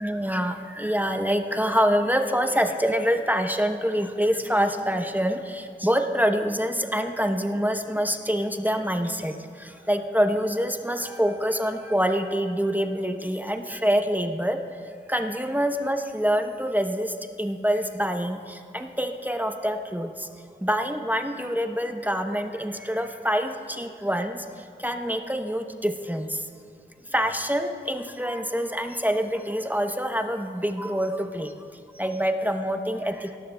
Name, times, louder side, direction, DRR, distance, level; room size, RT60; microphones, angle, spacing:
voice 1, 0.0-9.3 9.9-14.6 15.1-17.1 17.4-18.4 18.7-20.1 20.6-24.4 24.8-26.3 27.1-31.5 32.0-33.4, equal, 10° right, 5 dB, 0.8 m, -25 dB
18.5 x 13.0 x 2.2 m, 2.5 s
wide cardioid pair, 45°, 20 cm